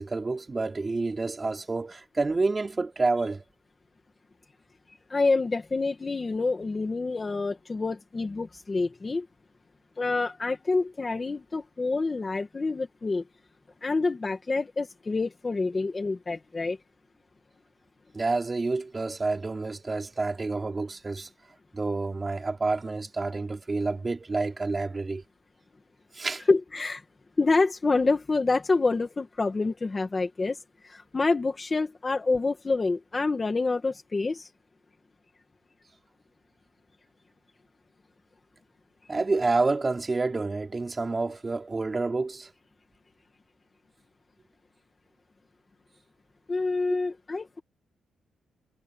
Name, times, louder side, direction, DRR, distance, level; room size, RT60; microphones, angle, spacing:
voice 1, 0.0-3.4 18.1-21.3 21.7-25.2 26.1-26.4 39.1-42.5, right 3 dB, 20° right, 3.3 m, -28 dB
voice 2, 5.1-9.3 10.0-13.2 13.8-16.8 26.5-27.0 27.4-30.6 30.8-34.5 46.5-47.6, left 3 dB, 20° left, 2.1 m, -27 dB
cardioid pair, 160°, 0 cm